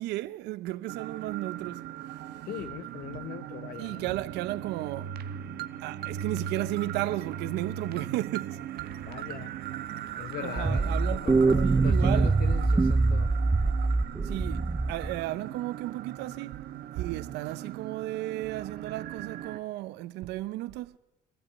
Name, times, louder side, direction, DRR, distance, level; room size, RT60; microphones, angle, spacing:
voice 1, 0.0-1.8 3.1-3.2 3.8-5.1 5.8-8.6 10.4-11.3 11.6-12.4 14.3-14.6 14.9-16.6 16.9-20.9, right 16 dB, 90° right, 0.7 m, -34 dB
sound 1, 0.9-19.6, right 10 dB, 70° right, 1.2 m, -39 dB
voice 2, 2.4-4.1 9.1-9.5 10.2-13.3, left 11 dB, 60° left, 0.9 m, -40 dB
sound 2, 10.6-15.2, right 3 dB, 15° right, 0.7 m, -24 dB
26.0 x 15.0 x 8.1 m
cardioid pair, 110°, 17 cm